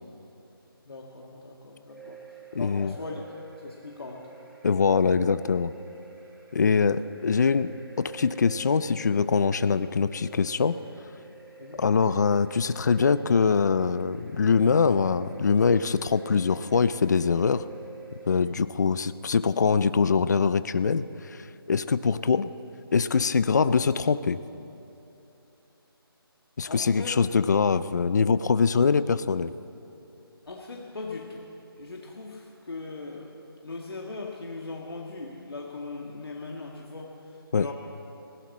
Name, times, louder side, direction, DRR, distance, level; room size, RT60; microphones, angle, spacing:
voice 1, 0.9-2.2 2.6-3.2 3.6-4.3 11.6-11.8 18.4-18.6 26.7-27.2 30.5-31.5 31.8-33.3 33.6-37.7, left 3 dB, 70° left, -1 dB, 1.8 m, -39 dB
sound 1, 1.9-18.4, right 5 dB, ahead, 0.9 m, -50 dB
voice 2, 2.5-2.9 4.6-5.7 6.5-10.8 11.8-17.6 18.3-21.4 21.7-22.5 22.9-24.4 26.6-29.5 37.5-37.7, left 5 dB, 45° left, 15 dB, 0.4 m, -23 dB
19.5 x 17.0 x 4.2 m, 3.0 s
figure-of-eight pair, 170°, 13 cm